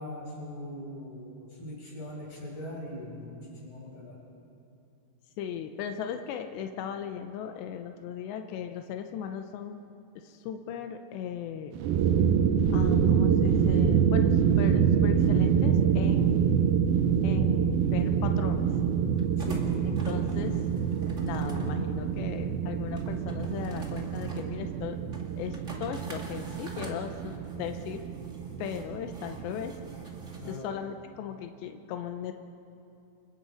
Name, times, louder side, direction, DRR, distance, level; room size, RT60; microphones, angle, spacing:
voice 1, 0.0-4.2 19.4-20.3 30.4-30.7, left 1 dB, 30° left, -4 dB, 6.6 m, -41 dB
voice 2, 5.4-9.8 10.2-11.7 12.7-16.4 17.2-18.7 20.1-20.6 21.2-25.0 25.4-28.0 28.6-29.8 30.5-32.3, left 8 dB, 90° left, 6 dB, 3.1 m, -37 dB
sound 1, 11.7-30.6, right 7 dB, 75° right, 2.2 m, -26 dB
sound 2, 15.6-30.6, right 2 dB, 30° right, 1.3 m, -49 dB
28.5 x 22.0 x 5.1 m, 2.8 s
omnidirectional pair, 4.8 m